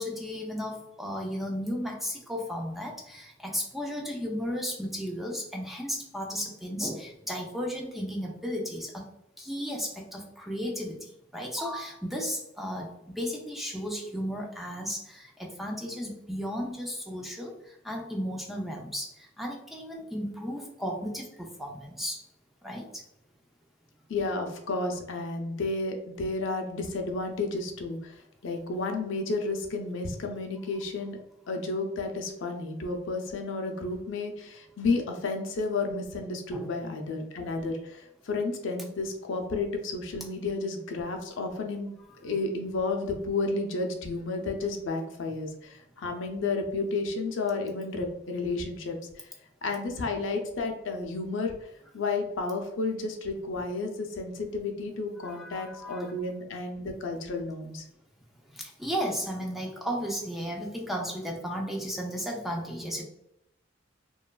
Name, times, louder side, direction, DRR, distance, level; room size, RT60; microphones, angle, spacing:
voice 1, 0.0-9.1 9.4-22.2 22.6-23.0 36.5-36.7 55.2-56.1 58.5-63.0, equal, ahead, 0 dB, 0.3 m, -34 dB
voice 2, 24.1-31.2 31.5-41.9 42.2-49.3 49.6-57.8, left 3 dB, 70° left, 3 dB, 0.5 m, -32 dB
2.9 x 2.3 x 2.2 m, 0.82 s
head